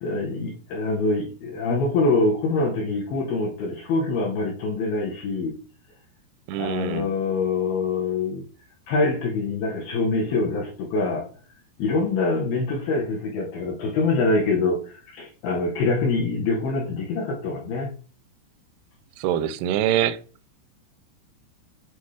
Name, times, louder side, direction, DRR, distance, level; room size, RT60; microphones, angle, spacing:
voice 1, 0.0-5.6 6.6-8.4 8.9-11.3 11.8-17.9, left 3 dB, 75° left, 2.2 m, -25 dB
voice 2, 6.5-7.1 19.2-20.2, right 11 dB, 85° right, 2.9 m, -24 dB
8.5 x 4.0 x 3.2 m
omnidirectional pair, 5.4 m